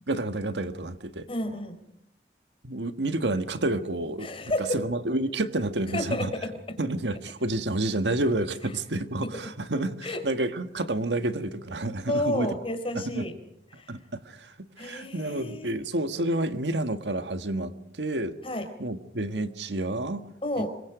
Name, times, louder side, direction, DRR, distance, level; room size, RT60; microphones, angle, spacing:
voice 1, 0.1-1.3 2.6-4.3 4.7-6.3 6.8-12.5 13.1-13.3 13.9-18.3 18.8-20.3 20.6-20.7, right 2 dB, 85° right, 10 dB, 1.7 m, -29 dB
voice 2, 1.3-1.8 4.2-4.9 5.9-6.8 9.2-9.3 10.0-10.3 12.1-13.4 13.7-14.0 14.8-15.7 18.4-18.7 20.4-20.7, left 1 dB, 30° left, 8 dB, 4.2 m, -31 dB
26.5 x 23.0 x 5.0 m, 0.76 s
head